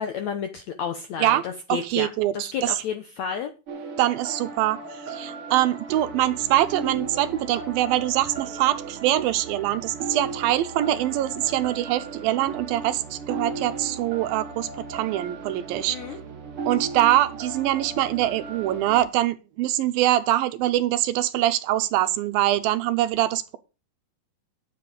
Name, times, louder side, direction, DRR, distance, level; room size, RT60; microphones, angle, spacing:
voice 1, 0.0-2.1 2.3-3.5 15.9-16.2, left 7 dB, 75° left, 1.6 m, -31 dB
voice 2, 1.9-2.7 4.0-4.8 5.1-16.0 16.7-23.6, right 14 dB, 80° right, 2.4 m, -23 dB
sound 1, 3.7-19.0, right 4 dB, 55° right, 1.6 m, -36 dB
11.0 x 7.7 x 5.0 m
omnidirectional pair, 4.4 m